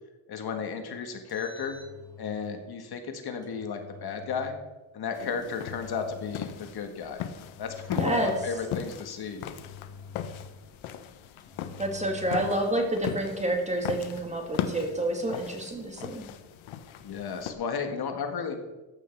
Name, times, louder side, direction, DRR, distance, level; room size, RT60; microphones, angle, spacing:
voice 1, 0.3-1.8 2.2-4.6 4.9-7.2 7.6-9.5 17.0-18.6, left 6 dB, 50° left, 5 dB, 1.8 m, -33 dB
Engine, 1.1-2.6 3.4-4.6 5.4-6.7 7.4-8.7 9.4-10.7 11.4-12.6, left 5 dB, 10° left, 2.8 m, -47 dB
sound 1, 5.1-17.5, left 9 dB, 80° left, 1.2 m, -38 dB
voice 2, 8.0-8.3 11.8-16.3, right 1 dB, 15° right, 3 dB, 2.1 m, -29 dB
14.5 x 9.5 x 4.6 m, 1.1 s
cardioid pair, 135°, 47 cm